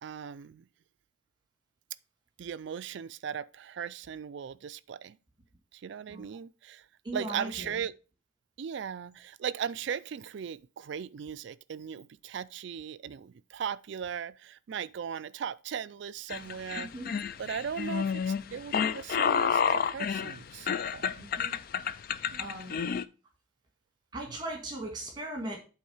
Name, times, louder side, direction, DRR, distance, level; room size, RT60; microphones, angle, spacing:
voice 1, 0.0-0.7 2.4-5.2 5.7-6.9 7.1-7.9 8.6-16.9 17.4-21.2 22.3-22.7, right 7 dB, 55° right, 0.3 m, -38 dB
voice 2, 7.0-7.8 16.7-17.2 21.2-21.6 22.4-23.0 24.1-25.6, right 1 dB, 20° right, 1.6 m, -39 dB
sound 1, 16.3-23.0, left 7 dB, 45° left, 0.3 m, -30 dB
8.5 x 3.6 x 5.4 m
head